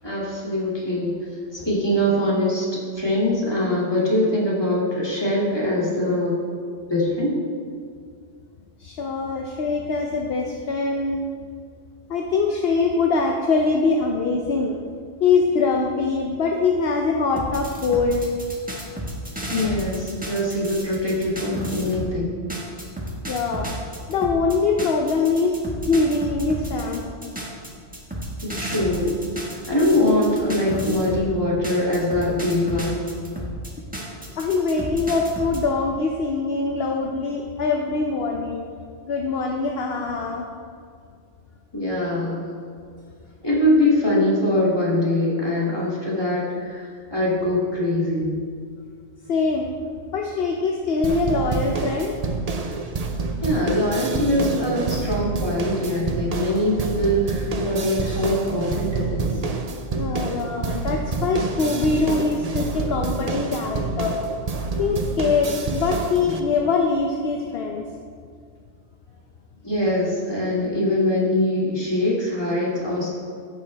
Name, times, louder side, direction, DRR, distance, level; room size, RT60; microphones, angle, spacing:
voice 1, 0.0-1.2 1.5-2.7 3.0-6.4 6.9-7.3 19.5-22.4 28.4-29.2 29.7-33.0 41.7-42.4 43.4-48.4 53.4-59.3 69.6-73.1, left 1 dB, 20° left, -7 dB, 2.5 m, -23 dB
voice 2, 8.8-11.3 12.1-14.8 15.2-18.2 23.3-23.7 24.1-25.6 25.9-27.1 34.1-38.6 39.0-40.5 49.3-49.8 50.1-52.2 60.0-64.2 64.8-67.8, left 4 dB, 60° left, 2 dB, 0.9 m, -23 dB
sound 1, 17.4-22.1 22.5-31.3 31.6-35.6, equal, 5° right, 1.4 m, -33 dB
sound 2, 51.0-66.4, right 3 dB, 40° right, 0.7 m, -28 dB
14.5 x 6.6 x 3.4 m, 2.2 s
omnidirectional pair, 1.2 m